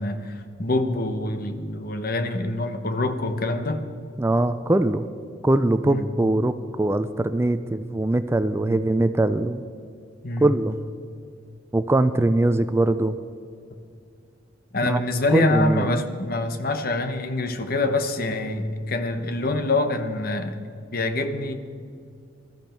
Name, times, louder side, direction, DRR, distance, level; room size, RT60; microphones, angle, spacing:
voice 1, 0.0-3.8 5.8-6.1 8.7-8.8 10.2-10.5 14.7-20.6 20.9-21.5, left 2 dB, 50° left, 8 dB, 1.1 m, -25 dB
voice 2, 4.2-5.0 5.4-9.6 10.4-10.7 11.7-13.2 14.8-15.0 15.3-16.0, right 2 dB, 15° right, 11 dB, 0.4 m, -22 dB
20.5 x 13.5 x 4.5 m, 2.3 s
head